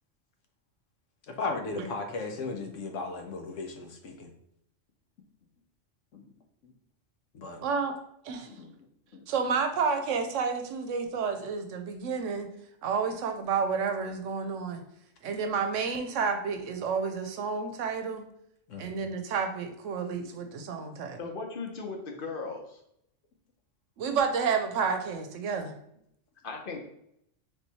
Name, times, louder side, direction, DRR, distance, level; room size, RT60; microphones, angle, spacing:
voice 1, 1.3-4.3 6.1-6.3 6.6-6.7 7.3-7.6 8.6-8.7 9.1-9.2 18.7-18.9, left 3 dB, 80° left, 4 dB, 1.1 m, -36 dB
voice 2, 7.6-7.9 8.2-8.5 9.3-12.5 12.8-14.8 15.2-18.2 18.8-21.2 24.0-25.8, right 5 dB, 80° right, 6 dB, 1.0 m, -30 dB
voice 3, 21.2-22.8 26.4-26.8, left 4 dB, 50° left, 3 dB, 0.9 m, -37 dB
3.7 x 3.1 x 4.0 m, 0.74 s
omnidirectional pair, 1.3 m